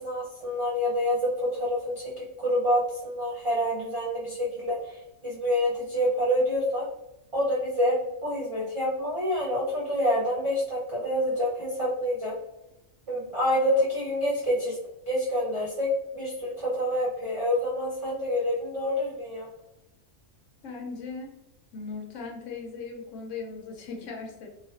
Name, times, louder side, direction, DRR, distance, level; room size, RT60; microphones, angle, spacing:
voice 1, 0.0-2.1 2.4-4.8 5.2-6.9 7.3-12.3 13.1-14.8 15.1-19.5, equal, 55° right, -7 dB, 0.3 m, -27 dB
voice 2, 20.6-21.3 21.7-24.5, left 4 dB, 75° left, 1 dB, 0.9 m, -38 dB
2.4 x 2.2 x 2.3 m, 0.87 s
omnidirectional pair, 1.3 m